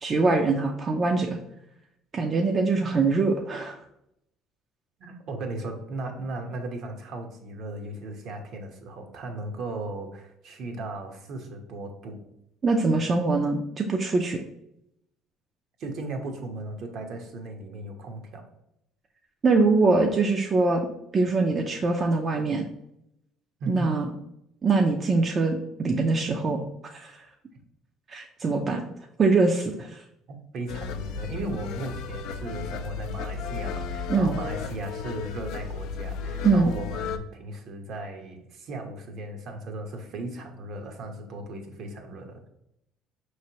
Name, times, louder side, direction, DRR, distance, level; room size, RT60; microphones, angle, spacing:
voice 1, 0.0-1.4 2.1-3.8 12.6-14.4 19.4-20.9 21.1-22.6 23.7-24.1 24.6-27.2 28.1-28.8 29.2-30.0 34.1-34.3 36.4-36.7, right 3 dB, 35° right, 2 dB, 0.5 m, -23 dB
voice 2, 5.0-12.2 15.8-18.4 23.6-24.0 30.5-42.5, right 2 dB, 60° right, 3 dB, 0.9 m, -36 dB
sound 1, 30.7-37.2, left 5 dB, 75° left, 0.3 m, -34 dB
5.2 x 3.2 x 2.8 m, 0.78 s
cardioid pair, 100°, 0 cm